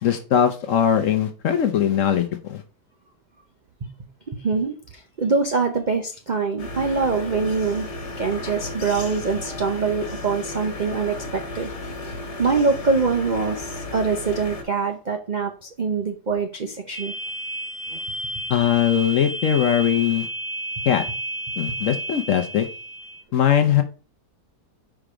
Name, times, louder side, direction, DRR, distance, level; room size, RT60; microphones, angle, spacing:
voice 1, 0.0-2.6 18.5-20.3 20.9-21.1 21.6-22.7 23.3-23.8, left 9 dB, 60° left, 7 dB, 0.9 m, -20 dB
voice 2, 4.3-7.9 8.2-11.7 12.0-17.1 17.9-18.0, right 4 dB, 60° right, 5 dB, 0.4 m, -24 dB
sound 1, 6.6-14.6, left 2 dB, 75° left, 1.9 m, -34 dB
sound 2, 16.9-23.2, right 1 dB, 25° left, 1.5 m, -32 dB
5.1 x 4.6 x 4.9 m, 0.36 s
omnidirectional pair, 1.8 m